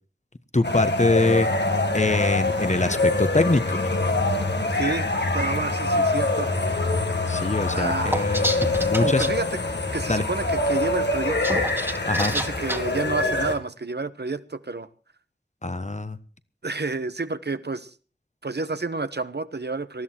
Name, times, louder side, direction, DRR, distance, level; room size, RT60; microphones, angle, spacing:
voice 1, 0.5-1.5 1.9-3.9 6.0-6.1 7.3-9.3 10.1-10.2 12.1-12.3 15.6-16.2, left 2 dB, 40° left, 12 dB, 1.3 m, -24 dB
sound 1, 0.6-13.5, left 2 dB, 85° left, 2.3 m, -24 dB
voice 2, 4.7-5.1 5.3-6.5 7.7-8.2 9.0-9.6 9.9-11.7 12.3-14.9 16.6-17.9 18.4-20.0, right 3 dB, 75° right, 12 dB, 1.2 m, -30 dB
sound 2, 8.1-9.3 11.2-12.8, equal, 15° right, 1.9 m, -28 dB
19.0 x 13.5 x 4.6 m, 0.38 s
wide cardioid pair, 45°, 18 cm